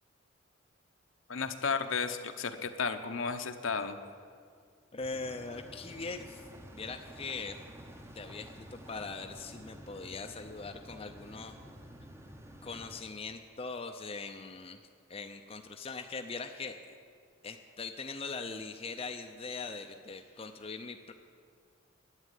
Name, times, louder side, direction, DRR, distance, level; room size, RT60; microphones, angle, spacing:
voice 1, 1.3-4.0, left 5 dB, 65° left, 8 dB, 0.8 m, -33 dB
voice 2, 4.9-6.4 6.7-7.6 8.1-11.6 12.6-14.8 15.1-17.0 17.4-21.1, left 4 dB, 25° left, 5 dB, 0.5 m, -41 dB
sound 1, 5.0-13.0, equal, 10° right, 0.7 m, -50 dB
11.5 x 9.2 x 9.2 m, 2.1 s
head